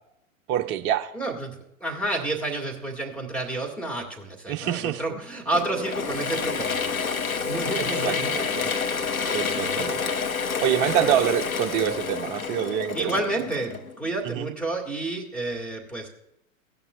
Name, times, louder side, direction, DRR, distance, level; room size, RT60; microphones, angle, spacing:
voice 1, 0.5-1.1 4.5-5.0 7.8-8.7 9.3-10.0 10.6-13.1 14.2-14.5, right 11 dB, 25° right, 7 dB, 0.6 m, -26 dB
voice 2, 1.1-7.0 7.3-8.3 9.3-9.9 11.0-11.2 12.9-16.1, right 2 dB, 5° left, 1 dB, 2.0 m, -30 dB
Mechanisms / Drill, 5.5-14.1, left 5 dB, 90° left, 0.9 m, -28 dB
17.0 x 11.0 x 2.4 m, 0.81 s
figure-of-eight pair, 105°, 41 cm